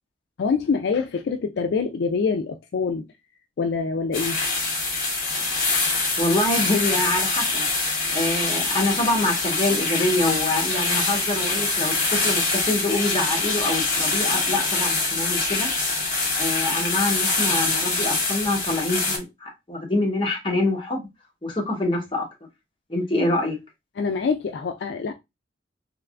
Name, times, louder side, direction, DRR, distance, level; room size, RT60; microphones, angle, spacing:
voice 1, 0.4-3.1 3.6-4.4 5.7-5.8 24.0-25.1, left 5 dB, 70° left, 0.3 m, -25 dB
sound 1, 4.1-19.2, left 3 dB, 50° left, 1.4 m, -24 dB
voice 2, 6.2-15.7 16.4-21.0 21.4-22.3 22.9-23.6, left 2 dB, 30° left, 1.0 m, -25 dB
3.4 x 3.1 x 2.4 m
head